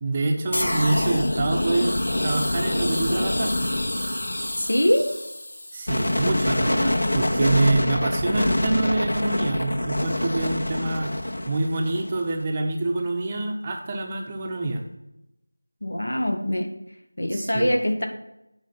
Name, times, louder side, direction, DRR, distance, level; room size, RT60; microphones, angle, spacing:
voice 1, 0.0-3.5 5.7-11.1 11.5-14.8 17.3-17.7, right 2 dB, 15° right, 2 dB, 0.7 m, -26 dB
sound 1, 0.5-12.3, left 1 dB, 60° left, 1.1 m, -26 dB
voice 2, 4.6-5.1 15.8-16.7 17.2-18.1, equal, 80° left, 4 dB, 2.0 m, -23 dB
9.1 x 5.1 x 5.7 m, 0.88 s
figure-of-eight pair, 175°, 0 cm